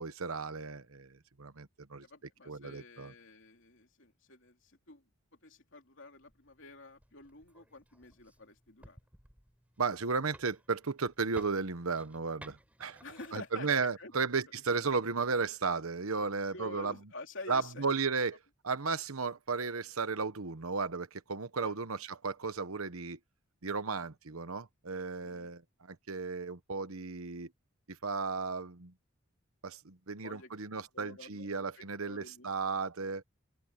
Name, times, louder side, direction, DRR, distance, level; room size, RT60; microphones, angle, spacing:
voice 1, 0.0-2.1 2.5-3.1 9.8-13.0 13.3-16.9 17.5-18.4 18.6-23.2 23.6-27.5 27.9-28.9 29.6-33.2, right 4 dB, 80° right, 1.2 m, -34 dB
voice 2, 2.0-5.0 5.4-9.0 13.0-13.7 14.0-14.1 16.5-18.0 21.6-21.8 25.2-25.5 30.2-30.5 30.9-32.5, left 3 dB, 60° left, 3.3 m, -49 dB
sound 1, 6.2-14.1, right 1 dB, 5° right, 6.9 m, -58 dB
open air
head